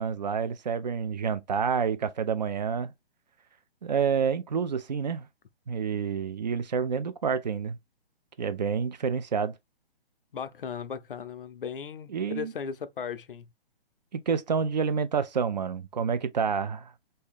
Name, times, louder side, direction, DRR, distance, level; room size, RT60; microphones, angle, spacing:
voice 1, 0.0-2.9 3.8-5.3 5.7-7.8 8.4-9.6 12.1-12.5 14.1-16.9, right 6 dB, 45° right, 0.4 m, -28 dB
voice 2, 10.3-13.5, left 7 dB, 60° left, 0.5 m, -37 dB
3.3 x 2.7 x 3.3 m
figure-of-eight pair, 130°, 30 cm